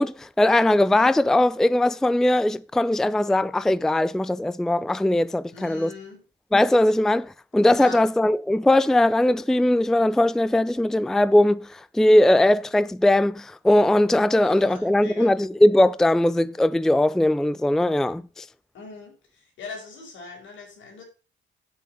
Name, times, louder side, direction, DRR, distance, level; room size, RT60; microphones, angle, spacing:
voice 1, 0.0-5.9 6.5-18.5, left 1 dB, ahead, 0.4 m, -20 dB
voice 2, 5.5-6.2 7.8-8.0 14.4-15.3 18.7-21.0, left 3 dB, 75° left, 5.3 m, -41 dB
8.7 x 7.4 x 5.5 m
cardioid pair, 90°, 20 cm